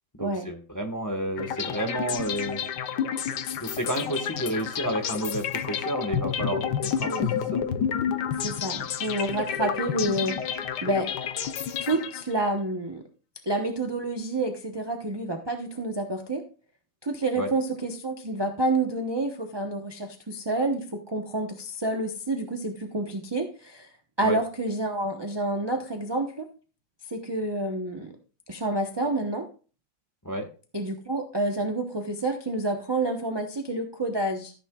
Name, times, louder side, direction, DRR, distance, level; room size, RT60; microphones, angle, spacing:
voice 1, 0.2-2.6 3.6-7.6 17.4-17.5 24.2-24.4 30.2-30.5, right 1 dB, 10° left, 4 dB, 1.1 m, -31 dB
sound 1, 1.4-12.4, left 8 dB, 65° left, 1.4 m, -30 dB
voice 2, 8.4-10.4 10.8-11.1 11.8-13.0 13.5-16.4 17.0-23.9 24.2-26.5 27.1-28.1 28.5-29.5 30.7-34.5, right 2 dB, 20° right, 2 dB, 0.7 m, -28 dB
14.5 x 9.7 x 2.4 m, 0.37 s
omnidirectional pair, 2.1 m